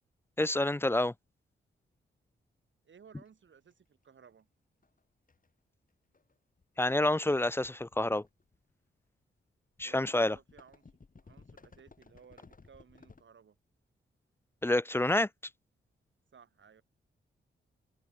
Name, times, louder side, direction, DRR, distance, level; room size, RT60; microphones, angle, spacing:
voice 1, 0.4-1.1 6.8-8.2 9.8-10.4 14.6-15.3, left 1 dB, 10° left, 0.5 m, -28 dB
voice 2, 2.8-4.5 9.8-10.9 11.2-13.6 16.3-16.8, right 6 dB, 65° right, 3.0 m, -58 dB
sound 1, 3.3-3.4 4.8-5.0 5.3-5.5 6.1-6.3 6.6-8.7 9.8-13.2, left 4 dB, 40° left, 5.0 m, -58 dB
cardioid pair, 55°, 21 cm